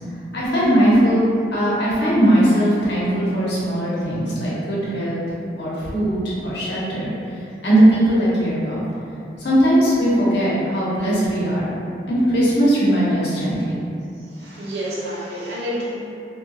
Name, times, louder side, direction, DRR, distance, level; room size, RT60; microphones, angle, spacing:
voice 1, 0.3-1.2 1.5-5.2 5.6-7.1 7.6-8.8 9.4-11.7 12.1-13.8, right 1 dB, 70° left, -8 dB, 0.8 m, -19 dB
voice 2, 14.3-16.0, equal, 65° right, -7 dB, 0.7 m, -29 dB
2.7 x 2.3 x 2.6 m, 2.6 s
head